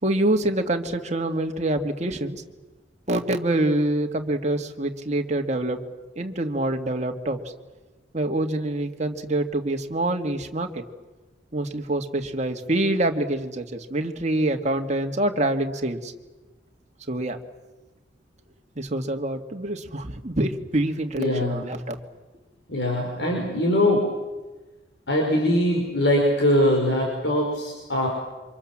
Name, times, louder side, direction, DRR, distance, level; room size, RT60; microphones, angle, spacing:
voice 1, 0.0-2.4 3.1-5.8 6.2-7.4 8.1-10.8 11.5-16.1 17.1-17.4 18.8-22.0, right 1 dB, 40° right, 4 dB, 2.1 m, -26 dB
voice 2, 21.2-21.6 22.7-24.1 25.1-28.1, left 1 dB, 75° left, 0 dB, 5.4 m, -22 dB
28.5 x 26.0 x 7.5 m, 1.2 s
head